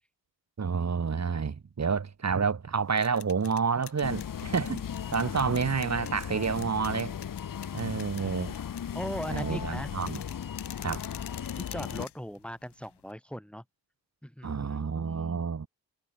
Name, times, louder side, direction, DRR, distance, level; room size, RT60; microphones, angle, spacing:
voice 1, 0.6-4.8 5.1-7.1 7.7-8.5 9.3-10.2 10.8-11.0 14.4-15.7, right 5 dB, 40° right, 3.0 m, -29 dB
sound 1, 2.7-13.1, left 10 dB, 75° left, 3.7 m, -49 dB
sound 2, 4.0-12.1, left 8 dB, 50° left, 1.6 m, -37 dB
voice 2, 8.2-8.5 8.9-9.9 11.5-13.6 14.2-15.4, equal, 5° left, 3.2 m, -40 dB
cardioid pair, 90°, 41 cm